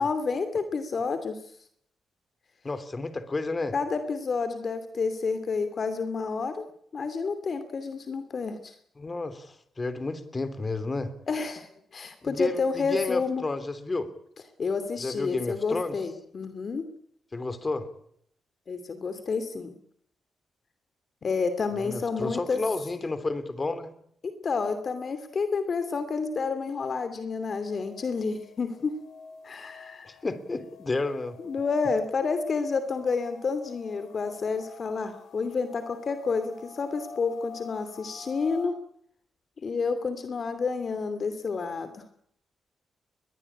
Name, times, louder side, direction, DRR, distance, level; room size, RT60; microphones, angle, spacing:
voice 1, 0.0-1.4 3.7-6.6 6.9-8.7 11.3-13.4 14.6-16.9 18.7-19.7 21.2-22.6 24.2-29.0 29.4-30.1 31.4-38.7 39.6-42.0, left 4 dB, 50° left, 10 dB, 2.7 m, -29 dB
voice 2, 2.6-3.7 9.0-11.1 12.2-14.1 15.0-15.9 17.3-17.9 21.8-23.9 30.0-31.4, left 3 dB, 30° left, 12 dB, 3.3 m, -31 dB
sound 1, 27.8-38.7, left 5 dB, 80° left, 4.2 m, -48 dB
23.0 x 21.5 x 8.7 m, 0.69 s
cardioid pair, 85°, 0 cm